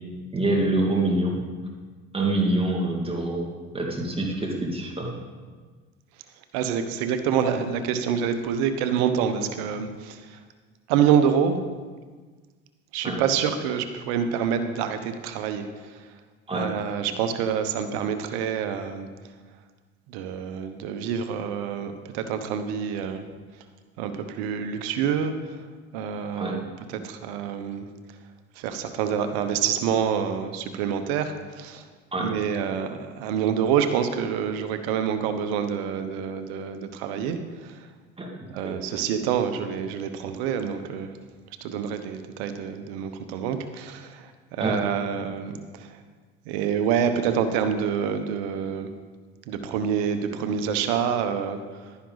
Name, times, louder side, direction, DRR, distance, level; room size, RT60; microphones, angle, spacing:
voice 1, 0.3-1.4 2.1-3.4 3.7-5.2 13.0-13.2 16.5-16.7 26.4-26.6 32.1-32.3 38.2-38.3 38.6-38.9 44.6-44.8, right 2 dB, 20° right, 0 dB, 2.2 m, -25 dB
voice 2, 6.5-10.4 10.9-11.6 12.9-15.7 16.5-19.1 20.1-23.2 24.0-25.3 25.9-26.6 27.0-27.8 28.6-31.8 32.2-37.8 38.5-41.1 41.6-44.3 44.6-45.9 46.5-48.9 49.5-51.9, right 8 dB, 80° right, 9 dB, 1.0 m, -27 dB
11.5 x 10.0 x 4.0 m, 1.4 s
supercardioid pair, 90°, 31 cm